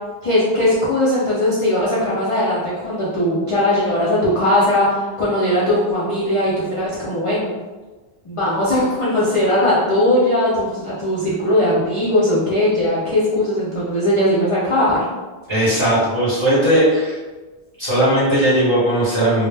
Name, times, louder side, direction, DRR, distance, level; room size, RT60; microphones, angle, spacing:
voice 1, 0.2-7.5 8.2-15.0, left 1 dB, 45° left, -10 dB, 0.4 m, -19 dB
voice 2, 15.5-17.2 17.8-19.5, right 1 dB, 30° right, -9 dB, 0.7 m, -17 dB
2.1 x 2.0 x 3.1 m, 1.3 s
omnidirectional pair, 1.1 m